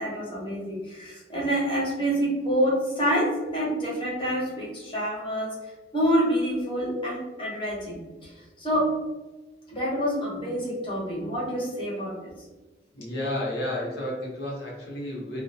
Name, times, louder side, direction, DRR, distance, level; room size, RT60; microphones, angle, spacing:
voice 1, 0.0-5.5 5.9-8.0 8.2-8.3 8.6-8.9 9.7-12.3, equal, 30° left, -5 dB, 0.9 m, -27 dB
voice 2, 12.9-15.4, left 1 dB, 70° left, -4 dB, 0.9 m, -31 dB
2.4 x 2.1 x 2.6 m, 1.1 s
head